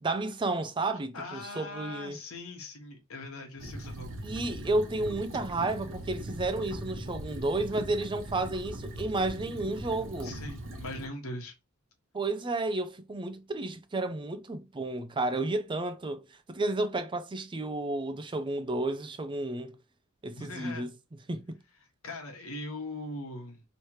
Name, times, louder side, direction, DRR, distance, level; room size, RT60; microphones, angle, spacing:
voice 1, 0.0-2.2 4.2-10.3 12.1-16.2 16.5-19.8 20.2-20.9 21.3-21.6, right 2 dB, 20° right, 0.5 m, -32 dB
voice 2, 1.1-4.2 10.2-11.5 20.3-20.9 22.0-23.6, left 2 dB, 70° left, 1.2 m, -40 dB
sound 1, 3.6-11.1, right 1 dB, 60° right, 1.1 m, -40 dB
3.2 x 2.9 x 4.6 m
head